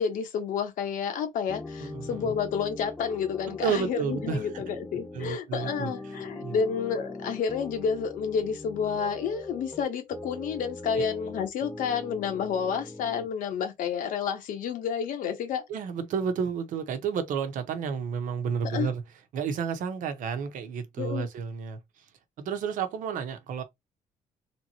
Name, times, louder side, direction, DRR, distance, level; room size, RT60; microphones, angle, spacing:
voice 1, 0.0-15.6 18.7-18.9 21.0-21.3, left 6 dB, 75° left, 1.2 m, -30 dB
sound 1, 1.5-13.3, left 2 dB, 10° left, 0.3 m, -41 dB
voice 2, 1.8-2.3 3.5-4.7 5.1-5.9 6.4-6.6 11.0-11.1 15.7-19.0 19.3-22.0 22.4-23.6, right 6 dB, 75° right, 1.0 m, -31 dB
3.4 x 3.0 x 4.2 m
cardioid pair, 155°, 14 cm